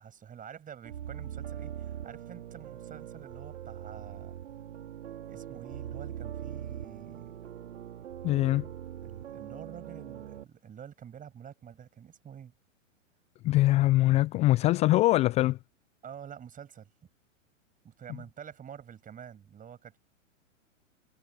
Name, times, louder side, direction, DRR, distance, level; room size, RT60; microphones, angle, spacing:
voice 1, 0.0-4.4 5.3-7.5 9.0-12.5 16.0-16.9 17.8-20.0, right 8 dB, 20° right, 7.2 m, -48 dB
sound 1, 0.8-10.4, right 10 dB, 65° right, 5.0 m, -42 dB
voice 2, 8.2-8.7 13.4-15.6, left 17 dB, 15° left, 0.4 m, -23 dB
figure-of-eight pair, 110°, 39 cm